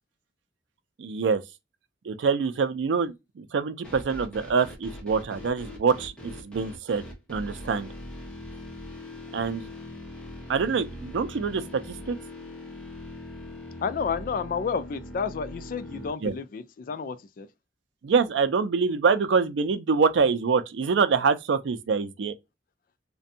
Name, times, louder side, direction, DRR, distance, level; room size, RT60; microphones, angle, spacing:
voice 1, 1.0-1.4 2.1-7.0 7.3-7.9 9.3-9.7 10.5-11.6 12.1-12.2 16.2-16.3 18.0-22.3, right 5 dB, 90° right, 0.4 m, -25 dB
sound 1, 3.8-16.1, left 1 dB, 5° left, 0.9 m, -41 dB
voice 2, 13.8-17.5, left 5 dB, 50° left, 0.3 m, -31 dB
2.5 x 2.2 x 2.6 m
head